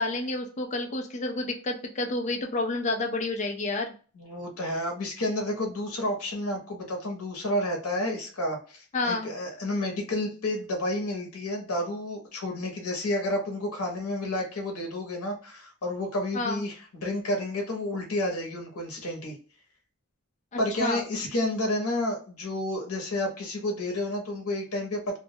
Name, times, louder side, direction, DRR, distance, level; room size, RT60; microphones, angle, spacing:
voice 1, 0.0-3.9 8.9-9.3 16.3-16.6 20.5-21.0, left 2 dB, 30° left, 3 dB, 0.4 m, -29 dB
voice 2, 4.2-19.4 20.6-25.2, left 1 dB, 75° left, 1 dB, 0.8 m, -30 dB
2.2 x 2.1 x 2.7 m, 0.39 s
head